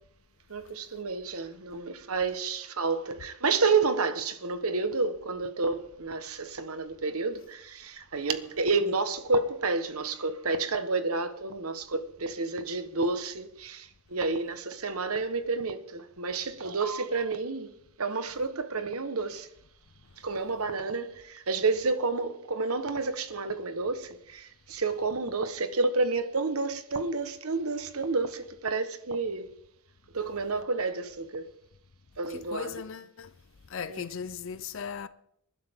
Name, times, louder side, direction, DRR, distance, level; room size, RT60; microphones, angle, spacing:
voice 1, 0.5-17.7 18.0-19.5 20.2-29.5 30.1-31.5 32.2-32.7 33.9-34.0, right 3 dB, 75° right, 1.3 m, -30 dB
voice 2, 32.3-33.4 33.7-35.1, left 6 dB, 60° left, 0.5 m, -38 dB
27.0 x 11.5 x 3.7 m
head